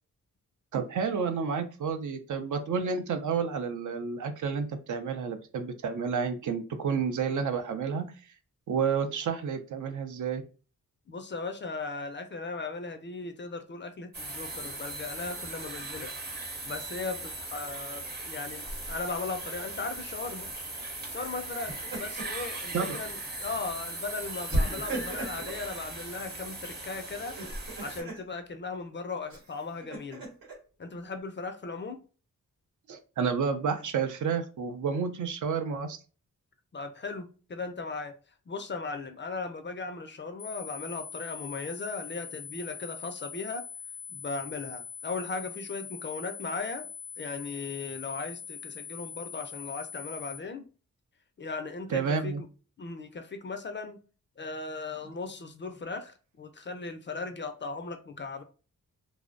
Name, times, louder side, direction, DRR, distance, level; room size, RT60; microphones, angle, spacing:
voice 1, 0.7-8.1 8.7-10.4 22.7-22.9 32.9-36.0 51.9-52.4, right 6 dB, 60° right, 8 dB, 0.5 m, -30 dB
voice 2, 11.1-16.1 16.6-20.5 21.1-27.4 27.8-30.2 30.8-32.0 36.7-38.1 38.5-43.6 44.1-46.9 47.2-50.6 51.4-52.3 52.8-54.0 54.4-58.4, left 4 dB, 35° left, 8 dB, 0.4 m, -37 dB
sound 1, 14.1-28.0, right 2 dB, 30° right, 0.8 m, -39 dB
Laughter, 18.7-19.2 21.5-22.4 22.9-23.0 24.5-25.7 27.2-28.2 29.3-30.5, right 1 dB, 80° right, 1.0 m, -35 dB
sound 2, 40.4-50.4, left 7 dB, 90° left, 0.5 m, -43 dB
2.5 x 2.0 x 2.4 m, 0.36 s
cardioid pair, 65°, 34 cm